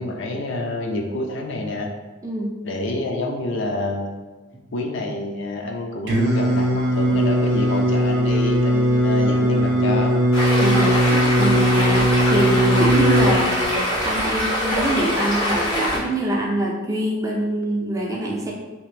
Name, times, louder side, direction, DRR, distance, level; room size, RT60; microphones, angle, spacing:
voice 1, 0.0-1.9 2.6-4.3 4.7-10.2 11.4-11.5, left 2 dB, 60° left, 2 dB, 0.4 m, -28 dB
Singing, 6.1-13.3, equal, 55° right, 0.6 m, -19 dB
Stream, 10.3-16.0, equal, 85° left, 1.2 m, -23 dB
voice 2, 10.6-18.5, right 1 dB, 15° right, -2 dB, 0.4 m, -24 dB
2.9 x 2.5 x 3.2 m, 1.2 s
head